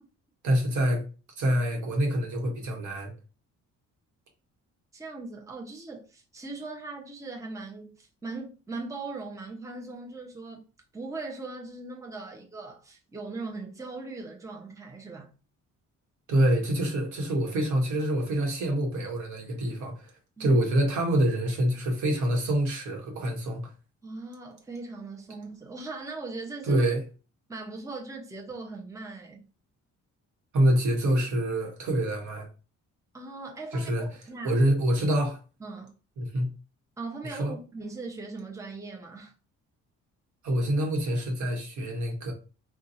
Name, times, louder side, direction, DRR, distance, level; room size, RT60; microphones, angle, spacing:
voice 1, 0.4-1.0 1.4-3.1 16.3-20.1 20.4-23.7 26.7-27.0 30.5-32.5 33.7-34.1 34.4-35.4 36.2-36.5 37.2-37.5 40.4-42.3, right 1 dB, 75° right, 1.2 m, -26 dB
voice 2, 4.9-10.6 10.9-15.3 20.4-20.6 24.0-26.8 27.5-29.4 33.1-34.6 35.6-35.9 37.0-39.3, right 3 dB, 10° right, 0.7 m, -39 dB
2.7 x 2.4 x 4.1 m
cardioid pair, 90°, 30 cm